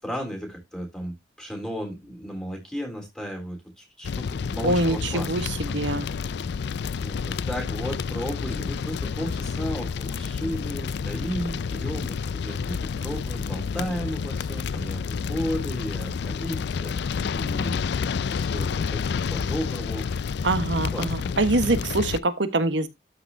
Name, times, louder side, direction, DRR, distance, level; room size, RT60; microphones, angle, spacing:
voice 1, 0.0-5.3 5.7-5.8 7.0-12.2 12.4-17.8 18.3-19.0 19.3-20.2 20.7-21.3, equal, 5° left, 3.8 m, -34 dB
sound 1, 4.0-22.2, left 6 dB, 65° left, 0.4 m, -29 dB
voice 2, 4.6-5.4 5.7-6.1 20.4-22.9, right 2 dB, 80° right, 1.3 m, -24 dB
12.5 x 5.9 x 2.7 m
head